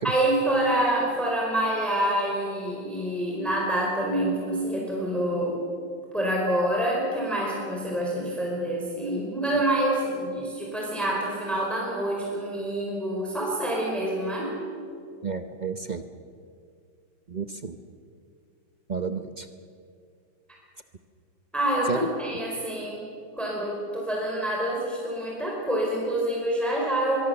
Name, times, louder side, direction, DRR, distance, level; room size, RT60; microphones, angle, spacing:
voice 1, 0.0-5.6 6.1-14.5 21.5-23.0 23.3-27.3, right 1 dB, ahead, -3 dB, 4.7 m, -27 dB
voice 2, 15.2-16.0 17.3-17.8 18.9-19.5 21.9-22.0, right 5 dB, 55° right, 8 dB, 0.4 m, -31 dB
23.0 x 23.0 x 7.0 m, 2.3 s
omnidirectional pair, 2.1 m